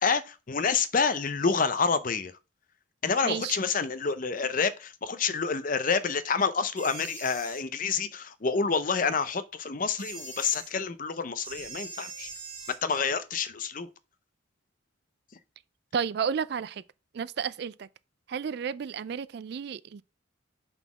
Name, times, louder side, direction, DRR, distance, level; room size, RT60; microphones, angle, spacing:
voice 1, 0.0-2.3 3.0-12.3 12.8-13.9, left 5 dB, 40° left, 0.6 m, -28 dB
voice 2, 3.2-3.6 15.9-16.8 17.1-17.9 18.3-20.0, right 7 dB, 55° right, 0.3 m, -32 dB
sound 1, 6.8-7.6 10.0-10.7 11.4-12.8, right 4 dB, 25° right, 1.8 m, -42 dB
5.6 x 4.0 x 5.9 m
head